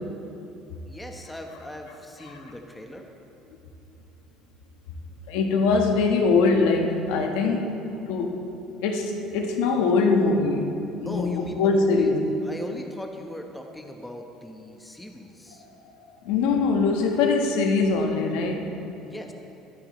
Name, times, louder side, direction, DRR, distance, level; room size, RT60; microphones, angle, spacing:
voice 1, 0.8-3.1 11.0-12.1 12.4-15.7 19.0-19.3, left 1 dB, 5° left, 1.1 m, -39 dB
voice 2, 5.3-7.8 8.1-8.4 8.8-10.7 11.0-12.2 16.2-18.7, left 4 dB, 90° left, 1.3 m, -22 dB
21.5 x 9.5 x 3.2 m
cardioid pair, 125°, 0 cm